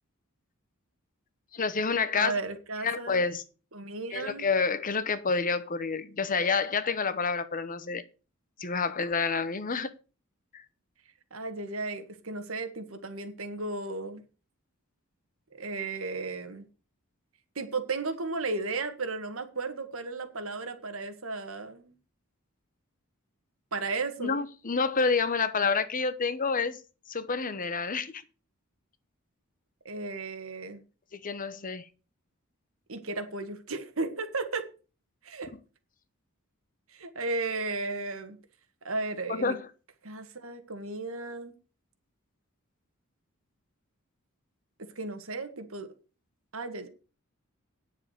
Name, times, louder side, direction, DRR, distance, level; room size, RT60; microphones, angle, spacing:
voice 1, 1.5-2.3 2.8-3.4 4.1-8.0 8.6-9.9 10.5-10.6 24.2-26.8 27.1-28.1 31.1-31.9 39.3-39.6, left 4 dB, 40° left, 1.0 m, -28 dB
voice 2, 2.1-3.2 3.7-4.5 11.3-14.2 15.5-16.6 17.6-21.9 23.7-24.4 29.9-30.8 32.9-34.7 35.2-35.5 36.9-38.4 38.8-39.6 40.0-41.5 44.8-45.9 46.5-46.9, right 3 dB, 70° right, 1.8 m, -34 dB
9.6 x 7.4 x 6.5 m
head